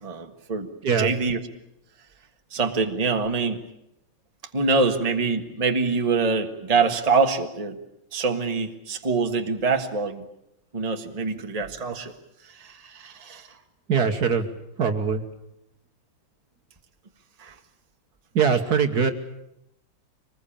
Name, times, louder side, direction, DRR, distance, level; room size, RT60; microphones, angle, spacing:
voice 1, 0.0-0.7 1.0-1.4 2.5-3.6 4.5-7.8 8.1-10.2 10.7-12.1 12.6-13.5 17.4-17.5, right 4 dB, 20° right, 5 dB, 1.5 m, -25 dB
voice 2, 13.9-14.5 14.8-15.2 18.3-19.1, right 6 dB, 55° right, 7 dB, 1.7 m, -22 dB
24.5 x 20.0 x 8.7 m, 0.82 s
omnidirectional pair, 2.1 m